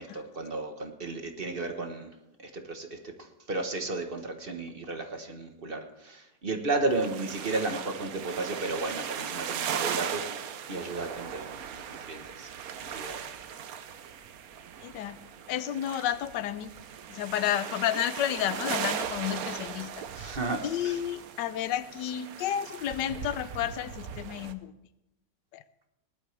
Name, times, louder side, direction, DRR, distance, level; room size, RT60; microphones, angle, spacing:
voice 1, 0.0-2.1 2.4-3.0 3.5-12.5 12.9-13.4 20.2-21.0, right 2 dB, 35° right, 5 dB, 1.2 m, -34 dB
sound 1, 6.9-24.5, right 8 dB, 65° right, 1.1 m, -38 dB
voice 2, 14.8-15.2 15.5-16.7 17.1-20.3 20.6-24.7 25.5-25.6, left 11 dB, 80° left, 14 dB, 1.3 m, -31 dB
19.0 x 11.5 x 3.3 m, 0.90 s
omnidirectional pair, 1.9 m